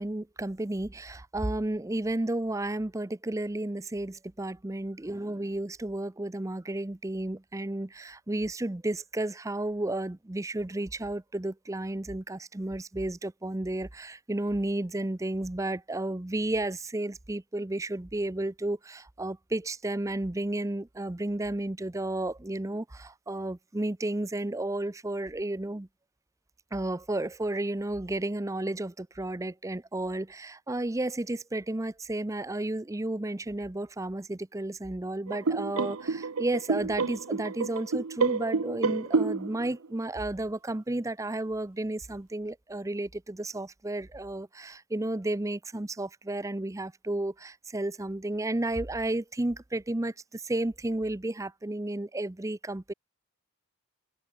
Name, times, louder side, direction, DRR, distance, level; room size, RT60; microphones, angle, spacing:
voice 1, 0.0-25.9 26.7-52.9, right 1 dB, 15° right, 0.5 m, -32 dB
sound 1, 35.3-39.9, right 4 dB, 75° right, 0.8 m, -29 dB
head